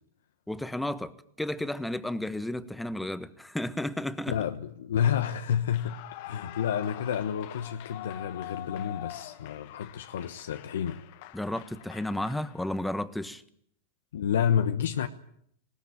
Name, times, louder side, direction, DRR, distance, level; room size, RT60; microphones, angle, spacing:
voice 1, 0.5-4.4 11.3-13.4, left 1 dB, 5° left, 1.3 m, -33 dB
voice 2, 4.3-11.0 14.1-15.1, left 8 dB, 75° left, 1.1 m, -29 dB
Clapping / Cheering / Applause, 5.6-13.0, left 16 dB, 55° left, 1.3 m, -45 dB
20.0 x 19.5 x 8.9 m
hypercardioid pair, 105°, 0 cm